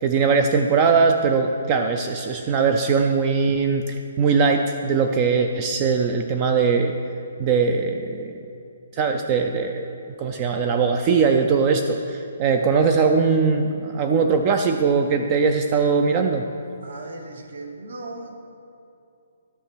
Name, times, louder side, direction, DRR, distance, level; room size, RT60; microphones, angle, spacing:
voice 1, 0.0-6.9 7.4-8.4 8.9-16.4, right 5 dB, 20° right, 5 dB, 0.3 m, -20 dB
voice 2, 16.8-18.3, right 2 dB, 65° right, 3 dB, 1.2 m, -37 dB
13.0 x 5.7 x 6.1 m, 2.7 s
hypercardioid pair, 180°, 0 cm